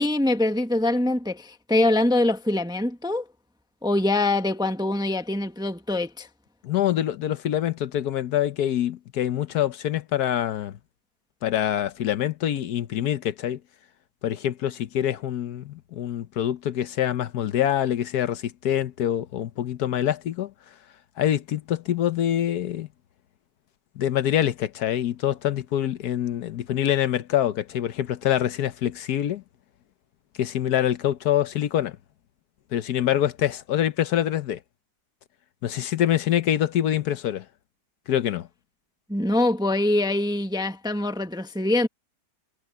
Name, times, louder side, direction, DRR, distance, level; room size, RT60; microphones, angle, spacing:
voice 1, 0.0-3.3 3.8-6.3 39.1-41.9, left 2 dB, 5° right, 0.8 m, -24 dB
voice 2, 6.6-10.7 11.4-13.6 14.2-20.5 21.2-22.9 24.0-29.4 30.4-32.0 32.7-34.6 35.6-37.4 38.1-38.5, left 11 dB, 75° left, 1.3 m, -25 dB
omnidirectional pair, 1.7 m